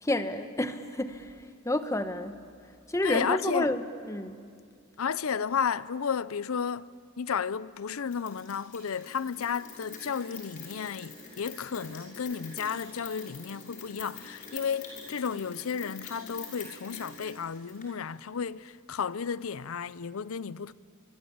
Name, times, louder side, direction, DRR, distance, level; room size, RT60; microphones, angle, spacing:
voice 1, 0.0-2.4 2.9-4.4, left 1 dB, 15° left, 1.0 m, -30 dB
voice 2, 3.0-3.7 5.0-20.7, left 6 dB, 90° left, 0.6 m, -33 dB
Rain, 8.1-17.9, left 4 dB, 40° left, 6.0 m, -46 dB
24.0 x 24.0 x 8.7 m
head